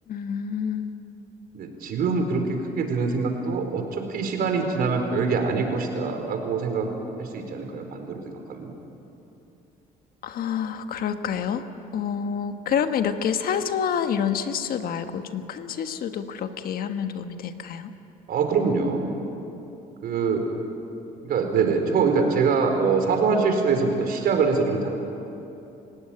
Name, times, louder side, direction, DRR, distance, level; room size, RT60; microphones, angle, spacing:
voice 1, 0.1-1.2 10.2-11.7 11.9-17.9, left 7 dB, 60° left, 8 dB, 1.5 m, -28 dB
voice 2, 1.5-6.9 7.2-8.7 18.3-19.1 20.0-20.5 21.2-24.9, right 5 dB, 65° right, 4 dB, 4.3 m, -24 dB
29.0 x 17.0 x 9.0 m, 2.9 s
cardioid pair, 110°, 17 cm